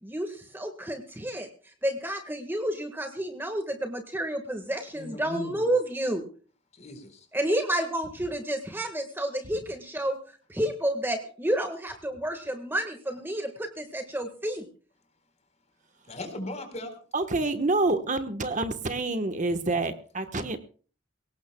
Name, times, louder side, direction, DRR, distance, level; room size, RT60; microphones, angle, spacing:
voice 1, 0.0-6.2 7.3-14.6, right 1 dB, 10° right, 5 dB, 1.6 m, -30 dB
voice 2, 4.9-5.7 6.7-7.3 16.0-16.9, left 2 dB, 35° left, 7 dB, 4.2 m, -38 dB
voice 3, 17.1-20.6, right 2 dB, 40° right, 8 dB, 1.2 m, -27 dB
23.0 x 18.5 x 2.3 m, 0.40 s
head